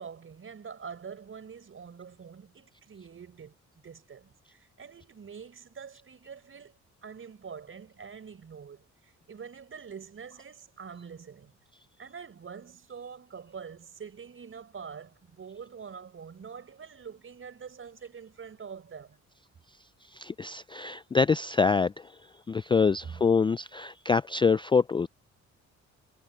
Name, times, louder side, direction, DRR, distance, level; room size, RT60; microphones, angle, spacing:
voice 1, 0.0-3.5 3.8-11.5 12.0-19.2 23.0-23.2, right 6 dB, 45° right, 5.6 m, -45 dB
voice 2, 20.1-22.1 22.5-25.1, left 5 dB, 15° left, 0.3 m, -25 dB
cardioid pair, 90°, 30 cm